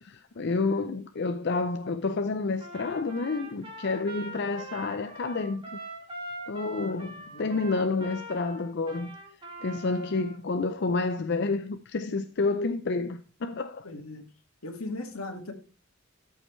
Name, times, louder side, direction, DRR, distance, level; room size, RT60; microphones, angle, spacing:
voice 1, 0.0-5.6 6.5-9.2 9.6-13.9, left 3 dB, 55° left, 0.5 m, -29 dB
Trumpet, 2.6-10.4, right 1 dB, 25° right, 2.1 m, -43 dB
voice 2, 6.8-7.6 13.8-14.2 14.6-15.5, left 2 dB, 85° left, 1.9 m, -39 dB
13.0 x 5.6 x 3.2 m
head